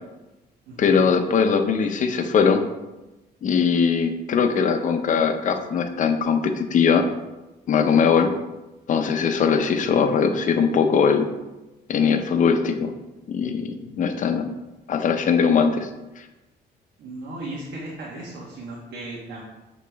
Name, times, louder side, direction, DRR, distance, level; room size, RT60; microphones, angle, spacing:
voice 1, 0.8-2.6 3.4-7.0 7.7-8.3 8.9-11.3 11.9-12.9 13.3-14.4 14.9-15.9, left 6 dB, 45° left, 7 dB, 0.6 m, -20 dB
voice 2, 9.8-10.2 17.0-19.4, right 2 dB, 90° right, -4 dB, 1.3 m, -36 dB
6.8 x 5.1 x 3.4 m, 1.1 s
cardioid pair, 150°, 18 cm